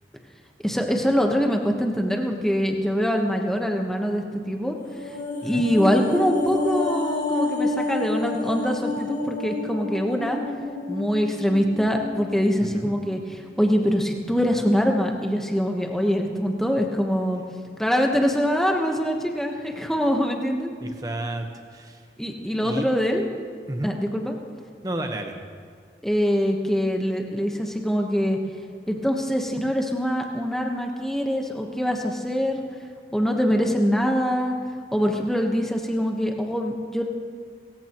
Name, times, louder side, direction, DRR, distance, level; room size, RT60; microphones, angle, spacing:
voice 1, 0.6-4.8 5.4-10.4 10.9-17.4 17.8-20.7 22.2-23.3 23.8-24.3 26.0-28.4 28.9-32.6 33.1-34.5 34.9-37.0, equal, ahead, 2 dB, 1.2 m, -24 dB
sound 1, 4.8-13.2 13.5-13.7, left 2 dB, 40° left, 2.8 m, -29 dB
voice 2, 12.6-12.9 20.8-22.0 22.6-22.9 23.7-23.9 24.8-25.4, right 1 dB, 20° right, 4 dB, 1.2 m, -31 dB
29.0 x 15.0 x 3.1 m, 2.1 s
head